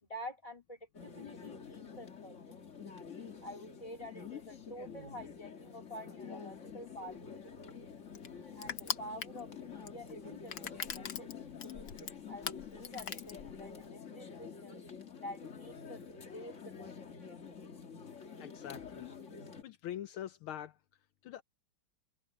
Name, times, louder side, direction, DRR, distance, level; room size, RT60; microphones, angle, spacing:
voice 1, 0.0-2.4 3.4-7.5 8.5-11.3 12.3-14.8 15.2-16.9, left 1 dB, 15° left, 2.9 m, -48 dB
sound 1, 0.9-19.6, left 6 dB, 35° left, 1.8 m, -48 dB
Crushing, 7.1-13.9, left 8 dB, 55° left, 1.4 m, -43 dB
voice 2, 18.4-19.2 19.6-20.8 21.2-21.4, left 11 dB, 75° left, 1.6 m, -44 dB
omnidirectional pair, 2.4 m